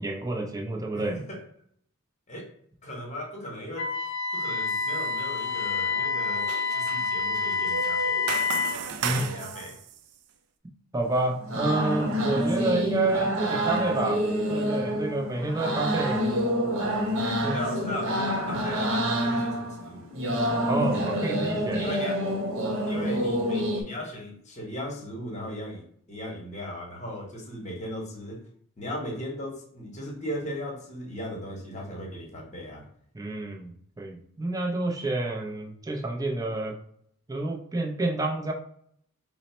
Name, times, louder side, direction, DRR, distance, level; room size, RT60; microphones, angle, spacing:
voice 1, 0.0-1.2 9.0-9.4 10.9-16.3 17.4-17.6 20.7-21.8 33.1-36.8 37.3-38.5, right 2 dB, 15° right, 1 dB, 0.5 m, -29 dB
voice 2, 0.9-1.4 2.3-2.5 2.8-3.9 4.3-8.5 9.0-9.8 17.5-20.1 21.8-22.3 22.9-28.4 28.8-32.9, equal, 30° left, 0 dB, 0.9 m, -37 dB
Wind instrument woodwind instrument, 3.8-8.8, left 4 dB, 50° left, 0.5 m, -28 dB
sound 1, 4.7-5.1 5.4-10.0, right 6 dB, 90° right, 0.4 m, -36 dB
sound 2, 11.0-23.8, equal, 60° right, 0.8 m, -27 dB
4.0 x 2.0 x 4.2 m, 0.65 s
head